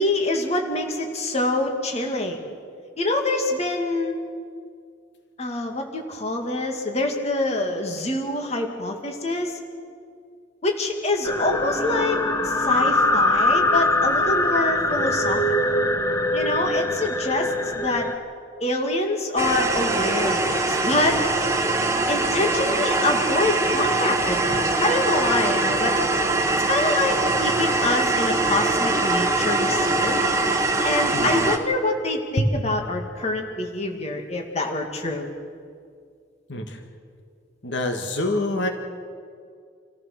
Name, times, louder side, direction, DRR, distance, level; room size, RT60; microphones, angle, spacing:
voice 1, 0.0-2.5 3.0-4.1 5.4-9.6 10.6-15.7 16.3-17.5 17.8-18.1 18.6-21.2 22.1-25.9 26.7-30.2 30.8-35.3, left 2 dB, 35° left, 2 dB, 2.1 m, -25 dB
sound 1, 11.2-18.2, left 1 dB, 15° left, 1.2 m, -22 dB
sound 2, 19.4-31.6, right 2 dB, 15° right, 1.5 m, -22 dB
voice 2, 31.1-31.4 32.4-32.5 36.5-36.8 37.6-38.7, left 1 dB, 70° left, 4 dB, 1.8 m, -25 dB
27.5 x 14.5 x 6.6 m, 2.2 s
head